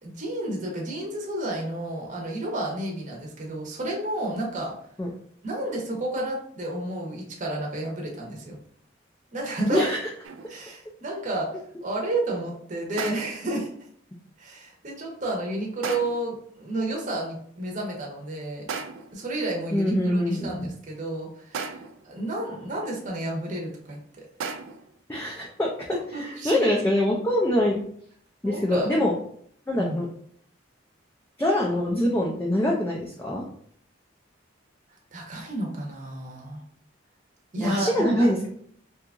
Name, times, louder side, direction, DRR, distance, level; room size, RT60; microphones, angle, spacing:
voice 1, 0.0-4.7 5.4-8.6 9.3-9.9 10.5-11.5 11.8-13.7 14.4-18.7 19.1-24.2 26.1-26.7 28.4-29.0 29.8-30.0 35.1-36.6 37.5-38.3, right 1 dB, 40° right, -1 dB, 0.7 m, -31 dB
sound 1, 10.2-10.7 13.0-13.5 15.8-16.3 18.7-19.3 21.5-22.1 24.4-25.0, right 5 dB, 85° right, 0.3 m, -35 dB
voice 2, 19.7-20.7 25.1-25.7 26.1-27.8 28.4-29.1 29.7-30.1 31.4-33.4 37.6-38.5, left 1 dB, 10° left, -3 dB, 0.3 m, -24 dB
2.8 x 2.3 x 3.5 m, 0.63 s
head